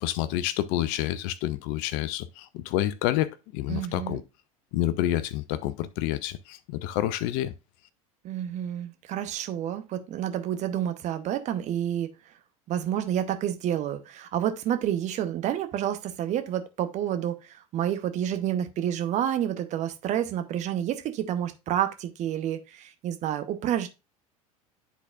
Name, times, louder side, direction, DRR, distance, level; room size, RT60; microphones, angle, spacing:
voice 1, 0.0-4.2 4.7-7.5, left 13 dB, 50° left, 0.5 m, -28 dB
voice 2, 3.7-4.2 8.2-12.1 12.7-23.9, right 10 dB, 40° right, 0.8 m, -29 dB
10.0 x 4.0 x 2.4 m
figure-of-eight pair, 75°, 19 cm